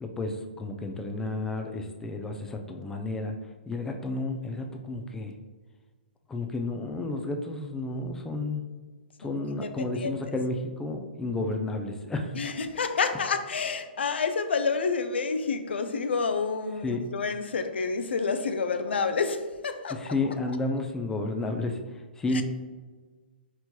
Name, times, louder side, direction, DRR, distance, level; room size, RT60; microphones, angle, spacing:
voice 1, 0.0-3.4 3.7-5.3 6.3-8.7 9.2-12.4 16.8-17.0 19.9-21.8 22.2-22.4, left 2 dB, 10° left, 0.3 m, -31 dB
voice 2, 9.2-10.4 12.3-20.1 22.3-22.4, left 5 dB, 85° left, 0.4 m, -29 dB
4.3 x 3.0 x 2.2 m
hypercardioid pair, 140°, 6 cm